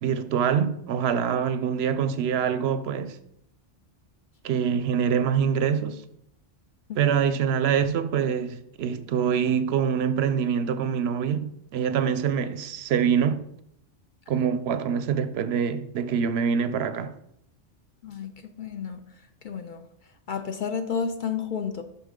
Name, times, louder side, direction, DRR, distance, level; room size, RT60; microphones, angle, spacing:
voice 1, 0.0-3.2 4.4-6.0 7.0-13.5 14.3-17.1, right 7 dB, 65° right, 0.7 m, -25 dB
voice 2, 18.0-19.0 19.4-19.8 20.3-21.8, left 6 dB, 55° left, 0.5 m, -31 dB
6.8 x 6.0 x 3.7 m
omnidirectional pair, 1.3 m